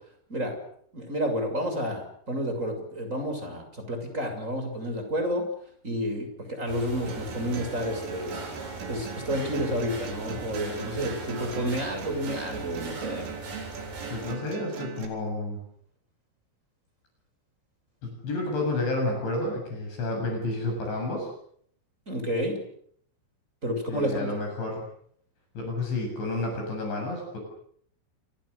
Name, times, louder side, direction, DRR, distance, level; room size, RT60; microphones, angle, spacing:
voice 1, 0.9-5.5 5.8-8.4 8.9-13.3 22.1-22.6 23.6-24.3, equal, 15° right, 5 dB, 6.8 m, -30 dB
sound 1, 6.7-14.4, right 2 dB, 50° right, 8.5 m, -40 dB
sound 2, 7.1-15.1, right 7 dB, 75° right, 6.3 m, -40 dB
voice 2, 14.1-15.6 18.0-21.3 23.9-24.8 25.6-27.4, left 2 dB, 60° left, 2 dB, 9.5 m, -30 dB
29.5 x 27.0 x 6.8 m, 0.65 s
omnidirectional pair, 5.9 m